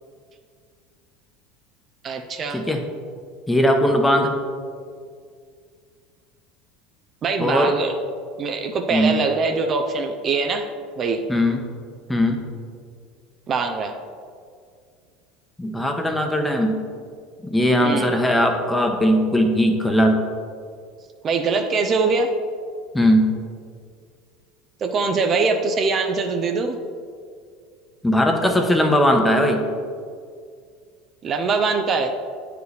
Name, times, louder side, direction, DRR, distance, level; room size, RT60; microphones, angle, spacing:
voice 1, 2.0-2.6 7.2-7.9 8.4-10.7 11.0-11.2 13.5-14.0 17.8-18.1 21.2-22.3 24.8-26.8 31.2-32.1, right 4 dB, 40° right, 6 dB, 0.6 m, -22 dB
voice 2, 3.5-4.3 7.4-7.7 8.9-9.2 11.3-11.7 12.1-12.4 15.6-16.8 17.4-20.2 22.9-23.3 28.0-29.6, equal, 10° left, 3 dB, 0.9 m, -19 dB
9.0 x 4.8 x 3.3 m, 2.1 s
hypercardioid pair, 85°, 0 cm